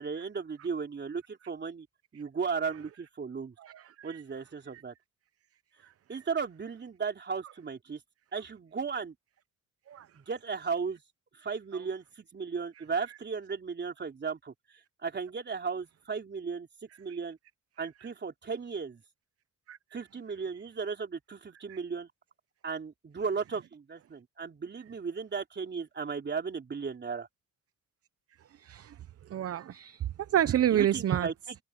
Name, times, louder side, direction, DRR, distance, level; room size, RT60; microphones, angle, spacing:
voice 1, 0.0-1.9 2.1-3.5 4.0-4.9 6.1-8.0 8.3-9.1 10.1-11.0 11.4-14.5 15.0-16.7 17.0-17.4 17.8-19.0 19.9-22.1 22.6-27.3 30.7-31.6, right 5 dB, 35° right, 3.7 m, -35 dB
voice 2, 3.6-4.2 9.9-10.1 17.1-17.2 17.8-17.9 19.7-19.8 21.7-21.8 28.6-29.0 29.3-31.3, right 11 dB, 50° right, 0.9 m, -29 dB
cardioid pair, 90°, 30 cm